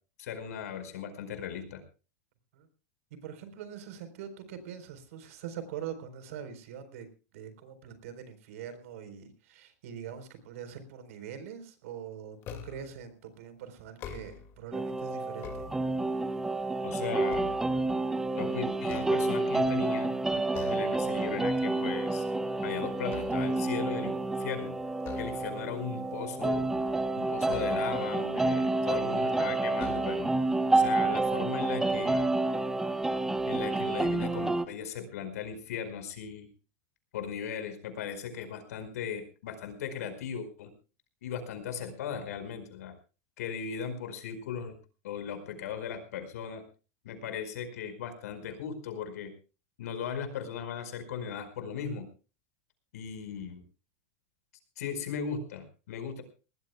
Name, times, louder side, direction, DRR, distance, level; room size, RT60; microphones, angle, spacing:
voice 1, 0.2-1.8 16.8-17.5 18.3-20.1 20.4-22.2 22.6-24.7 25.2-26.7 27.1-30.3 30.7-32.3 33.5-36.5 37.1-40.7 41.2-42.9 43.4-44.7 45.0-46.6 47.0-49.3 49.8-52.1 52.9-53.6 54.8-56.2, left 7 dB, 90° left, 9 dB, 5.0 m, -37 dB
voice 2, 3.1-7.1 7.3-15.7 25.3-25.5, right 8 dB, 65° right, 10 dB, 4.1 m, -43 dB
sound 1, 12.4-13.0 13.9-14.6 15.2-16.3 16.8-18.3 18.8-19.8 20.5-21.0 21.4-21.7 22.0-23.8 25.0-25.8 27.5-28.2 29.0-29.1 29.7-30.5, left 8 dB, 30° left, 2.2 m, -45 dB
sound 2, 14.7-34.6, right 2 dB, 5° right, 0.6 m, -29 dB
22.5 x 19.0 x 2.3 m, 0.34 s
supercardioid pair, 170°, 8 cm